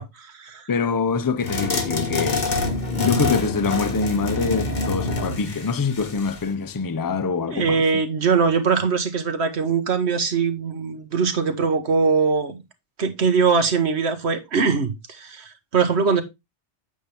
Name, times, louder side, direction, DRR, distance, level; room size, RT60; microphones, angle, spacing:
voice 1, 0.0-0.6 7.5-12.6 13.0-16.2, right 5 dB, 65° right, 1.5 m, -22 dB
voice 2, 0.7-2.7 2.9-8.0, left 5 dB, 25° left, 0.5 m, -25 dB
sound 1, 1.4-6.5, left 3 dB, 40° left, 1.5 m, -26 dB
8.5 x 7.0 x 3.4 m
omnidirectional pair, 1.2 m